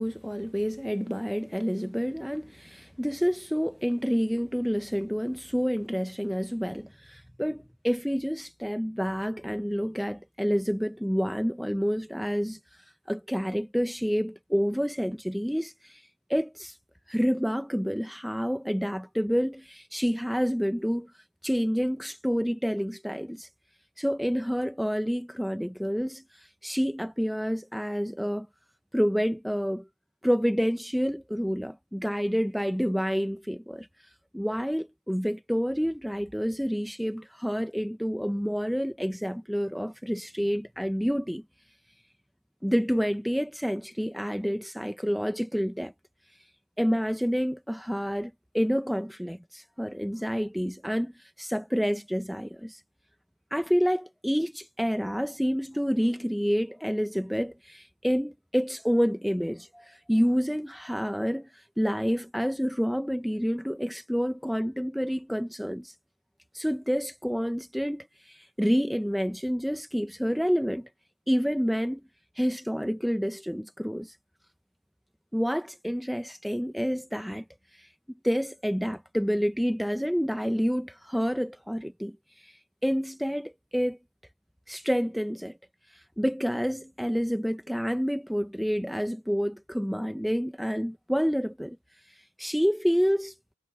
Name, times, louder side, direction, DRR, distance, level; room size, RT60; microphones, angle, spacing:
voice 1, 0.0-12.6 13.1-16.8 17.1-21.1 21.4-23.5 24.0-28.5 28.9-29.8 30.2-33.9 34.3-41.4 42.6-45.9 46.8-52.8 53.5-65.9 66.5-70.9 71.3-72.0 72.4-74.2 75.3-77.4 77.8-77.9 78.2-82.2 82.4-84.0 84.7-85.5 85.9-91.8 92.4-93.3, equal, ahead, 0.4 m, -28 dB
head